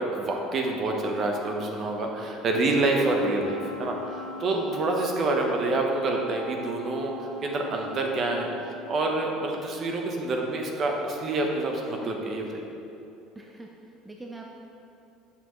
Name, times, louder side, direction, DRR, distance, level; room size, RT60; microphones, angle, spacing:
voice 1, 0.0-8.5 8.9-12.6, right 2 dB, 40° right, 1 dB, 0.9 m, -27 dB
Wind instrument woodwind instrument, 2.6-8.7, left 1 dB, 65° right, 1.2 m, -41 dB
voice 2, 4.5-4.9 13.4-14.5, right 2 dB, 10° right, 0 dB, 0.5 m, -44 dB
6.8 x 6.8 x 3.1 m, 2.8 s
supercardioid pair, 110°, 0 cm